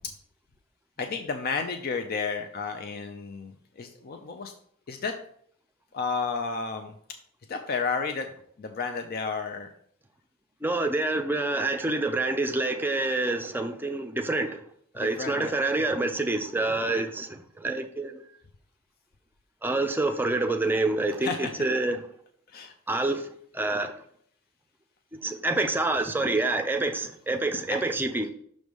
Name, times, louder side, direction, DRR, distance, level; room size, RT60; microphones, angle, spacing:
voice 1, 1.0-3.5 3.8-4.5 4.9-5.1 5.9-6.9 7.5-8.3 8.6-9.7 15.0-15.5 21.2-21.7 22.5-23.0 27.7-27.8, left 5 dB, 45° left, 0.5 m, -32 dB
voice 2, 10.6-14.6 14.9-18.2 19.6-22.0 22.9-23.3 23.5-23.9 25.2-28.3, right 2 dB, 10° right, 0.5 m, -27 dB
6.2 x 3.2 x 5.2 m
head